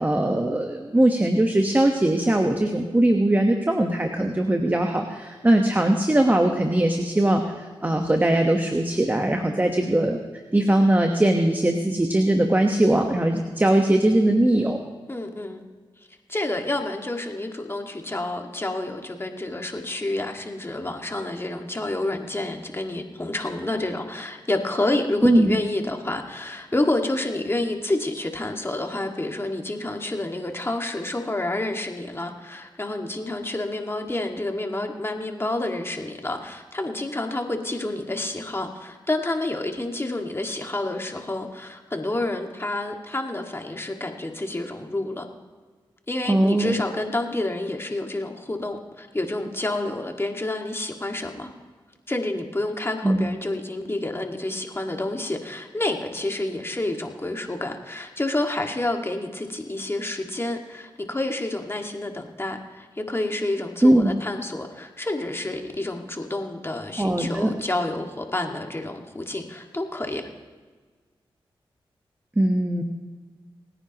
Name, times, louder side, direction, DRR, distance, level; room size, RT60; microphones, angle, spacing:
voice 1, 0.0-10.2 10.5-14.8 25.2-25.5 46.3-46.8 53.0-53.3 63.8-64.1 67.0-67.5 72.4-72.8, right 1 dB, 20° right, 3 dB, 1.2 m, -20 dB
voice 2, 15.1-15.6 16.3-45.3 46.1-51.5 52.1-70.3, left 2 dB, 25° left, 3 dB, 1.9 m, -29 dB
28.5 x 9.9 x 3.0 m, 1.4 s
cardioid pair, 55°, 10 cm